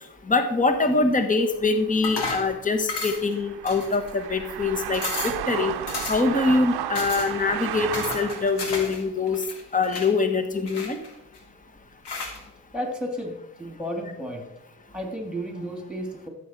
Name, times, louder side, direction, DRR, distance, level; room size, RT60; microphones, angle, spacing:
voice 1, 0.3-5.7 6.1-9.4 9.7-11.0, left 3 dB, 20° left, 6 dB, 1.3 m, -24 dB
sound 1, 1.5-8.7, right 12 dB, 75° right, 0.7 m, -34 dB
sound 2, 2.0-2.5 2.9-3.3 3.7-4.3 4.6-4.7 4.9-5.4 5.9-6.3 6.9-7.3 7.9-9.0 9.3-10.1 10.7-11.4 12.0-12.4, left 3 dB, 85° left, 2.1 m, -33 dB
voice 2, 12.7-14.5 14.9-16.3, equal, ahead, 3 dB, 2.9 m, -32 dB
13.0 x 7.0 x 4.6 m, 0.89 s
cardioid pair, 60°, 40 cm